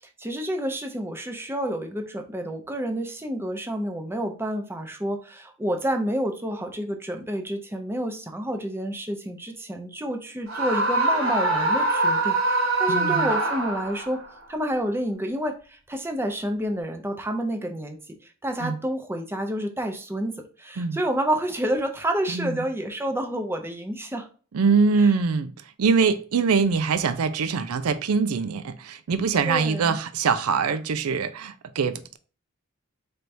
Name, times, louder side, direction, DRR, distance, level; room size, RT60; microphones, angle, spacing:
voice 1, 0.2-14.2 14.5-24.3 25.0-25.1 29.4-30.0, right 1 dB, 10° right, 0.6 m, -29 dB
Screaming, 10.5-14.2, right 2 dB, 65° right, 1.0 m, -23 dB
voice 2, 12.9-13.3 18.6-18.8 20.8-21.0 22.3-22.7 24.5-25.5 25.8-32.2, right 5 dB, 85° right, 0.4 m, -23 dB
4.4 x 3.4 x 2.6 m
head